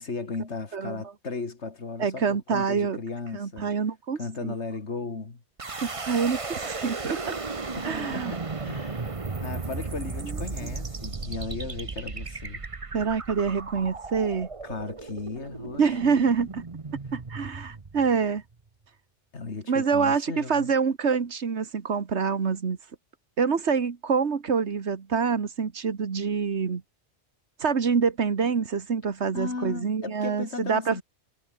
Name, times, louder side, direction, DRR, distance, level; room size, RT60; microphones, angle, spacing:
voice 1, 0.0-3.7 4.1-5.4 7.8-12.6 14.6-16.2 19.3-20.7 29.3-31.0, left 4 dB, 80° left, 2.7 m, -36 dB
voice 2, 2.0-3.0 3.3-4.5 5.7-7.3 7.8-8.3 12.9-14.5 15.8-16.6 17.1-18.4 19.7-22.8 23.4-26.8 27.6-31.0, right 5 dB, 75° right, 1.8 m, -26 dB
sound 1, 5.6-18.5, right 4 dB, 30° right, 1.2 m, -35 dB
omnidirectional pair, 1.1 m